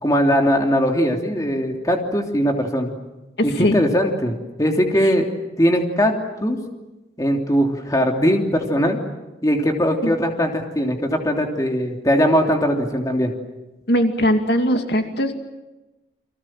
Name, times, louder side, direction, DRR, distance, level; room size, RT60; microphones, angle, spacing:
voice 1, 0.0-2.9 3.4-5.3 5.6-6.1 6.4-6.6 7.2-9.0 9.4-13.3, equal, 20° left, 2 dB, 3.1 m, -20 dB
voice 2, 3.4-3.8 10.0-10.1 13.9-15.3, equal, 65° left, 5 dB, 2.5 m, -20 dB
30.0 x 25.0 x 7.6 m, 1.0 s
head